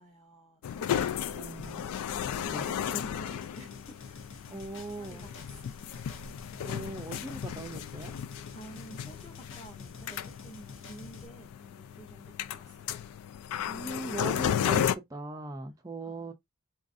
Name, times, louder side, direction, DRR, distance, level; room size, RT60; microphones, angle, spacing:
voice 1, 0.0-6.2 8.5-13.1 16.0-16.3, right 1 dB, 20° left, 0.7 m, -51 dB
sound 1, 0.6-14.9, left 9 dB, 85° left, 0.3 m, -34 dB
voice 2, 1.3-1.9 2.4-2.7 4.5-5.3 6.6-8.1 13.7-16.3, right 2 dB, 15° right, 0.4 m, -39 dB
sound 2, 1.6-11.3, left 4 dB, 55° left, 0.7 m, -50 dB
4.0 x 2.4 x 2.5 m
head